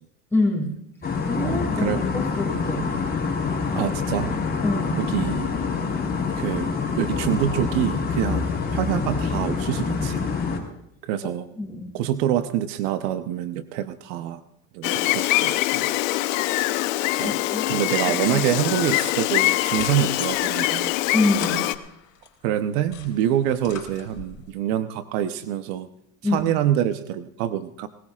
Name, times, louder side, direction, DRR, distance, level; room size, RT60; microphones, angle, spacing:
voice 1, 0.3-0.8 1.3-2.9 4.6-5.0 11.2-11.3 11.6-11.9 17.2-17.7 18.3-18.4 21.1-21.7 26.2-26.5, left 2 dB, 5° left, -4 dB, 7.3 m, -25 dB
sound 1, 1.0-10.6, left 5 dB, 25° left, 4.5 m, -26 dB
voice 2, 1.4-2.0 3.8-4.3 5.0-5.5 6.4-10.2 11.0-11.5 11.9-14.4 14.7-15.9 17.2-17.4 17.7-20.9 22.4-25.9 26.3-27.9, right 11 dB, 75° right, 10 dB, 1.0 m, -26 dB
Gull seagull, 14.8-21.7, left 17 dB, 80° left, 0.9 m, -23 dB
sound 2, 19.4-22.3 22.7-24.4, left 8 dB, 45° left, 4.2 m, -41 dB
20.5 x 19.5 x 2.5 m, 0.79 s
supercardioid pair, 105°, 39 cm